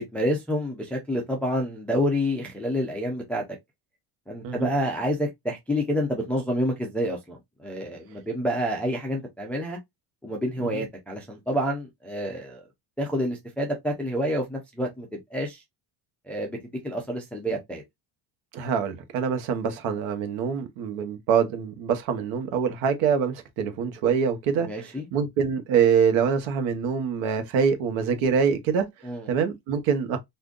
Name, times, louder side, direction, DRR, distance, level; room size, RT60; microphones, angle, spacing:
voice 1, 0.0-3.4 4.3-9.8 10.2-12.6 13.0-15.6 16.3-17.8 24.6-25.1 29.0-29.3, equal, 5° left, 0.3 m, -28 dB
voice 2, 18.5-28.9 29.3-30.2, right 7 dB, 75° right, 1.0 m, -25 dB
3.7 x 2.6 x 2.3 m
cardioid pair, 160°, 47 cm